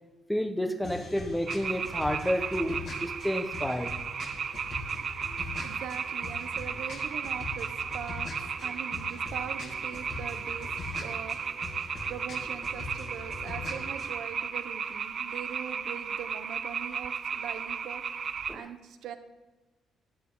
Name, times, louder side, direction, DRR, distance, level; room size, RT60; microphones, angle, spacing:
voice 1, 0.3-4.0 4.9-5.0 18.5-18.7, equal, 5° left, 1.1 m, -30 dB
sound 1, 0.8-14.1, left 3 dB, 60° left, 3.5 m, -42 dB
sound 2, 1.5-18.6, right 6 dB, 50° right, 0.6 m, -35 dB
voice 2, 5.6-11.7 12.1-18.0 18.5-19.2, right 9 dB, 80° right, 1.0 m, -42 dB
16.5 x 12.5 x 4.0 m
cardioid pair, 90°, 0 cm